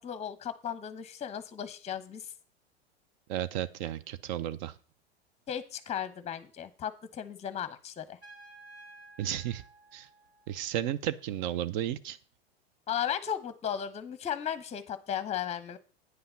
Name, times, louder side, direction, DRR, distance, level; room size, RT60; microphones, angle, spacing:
voice 1, 0.0-2.3 5.5-8.2 12.9-15.8, left 9 dB, 20° left, 14 dB, 1.0 m, -35 dB
voice 2, 3.3-4.8 9.2-9.6 9.9-10.1 10.5-12.2, right 11 dB, 45° right, 14 dB, 0.8 m, -33 dB
Trumpet, 8.2-10.9, right 2 dB, 85° right, 3.0 m, -53 dB
9.5 x 5.6 x 5.7 m, 0.39 s
figure-of-eight pair, 85°, 32 cm